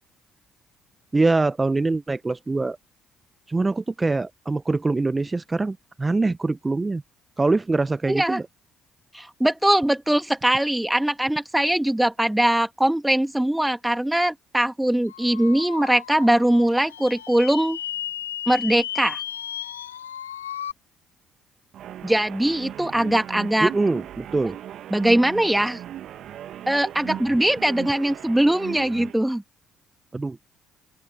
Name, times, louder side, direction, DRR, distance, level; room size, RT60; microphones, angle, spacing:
voice 1, 1.1-2.8 3.5-7.0 7.4-8.5 23.6-24.6 30.1-30.4, right 3 dB, 25° right, 1.1 m, -23 dB
voice 2, 8.1-8.4 9.1-17.8 18.5-19.2 22.0-23.7 24.9-25.8 26.7-29.4, right 1 dB, 5° right, 2.6 m, -21 dB
sound 1, 15.1-20.7, left 10 dB, 85° left, 0.8 m, -34 dB
sound 2, 21.7-29.2, right 11 dB, 60° right, 1.7 m, -37 dB
open air
hypercardioid pair, 50°, 0 cm